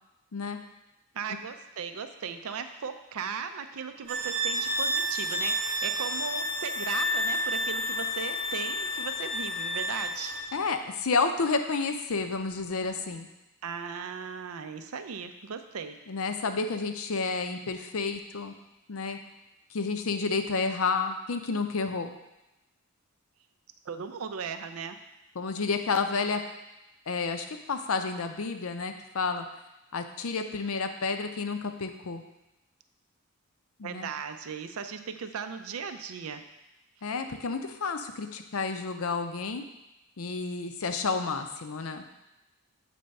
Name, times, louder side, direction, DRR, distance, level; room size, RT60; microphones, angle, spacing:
voice 1, 1.1-10.3 13.6-16.0 23.9-25.0 33.8-36.4, right 6 dB, 70° right, 8 dB, 0.5 m, -37 dB
sound 1, 4.1-10.5, equal, 90° right, 1.0 m, -30 dB
voice 2, 10.5-13.3 16.1-18.5 18.9-19.2 19.7-22.1 25.4-26.4 27.1-29.4 29.9-32.2 33.8-34.1 37.0-39.6 40.2-42.0, left 4 dB, 70° left, 7 dB, 0.6 m, -30 dB
7.7 x 3.4 x 5.3 m, 0.95 s
head